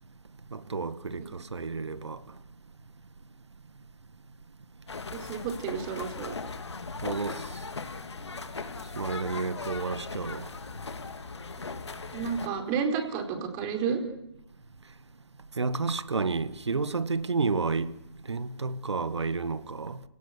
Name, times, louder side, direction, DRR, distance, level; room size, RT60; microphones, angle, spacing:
voice 1, 0.5-2.2 7.0-7.5 9.0-10.5 15.6-18.0 18.3-20.0, right 4 dB, 85° right, 1.7 m, -31 dB
sound 1, 4.9-12.5, left 4 dB, 80° left, 2.7 m, -38 dB
voice 2, 5.1-6.4 12.1-14.0, right 6 dB, 25° right, 4.4 m, -31 dB
28.5 x 18.5 x 8.4 m
hypercardioid pair, 150°, 14 cm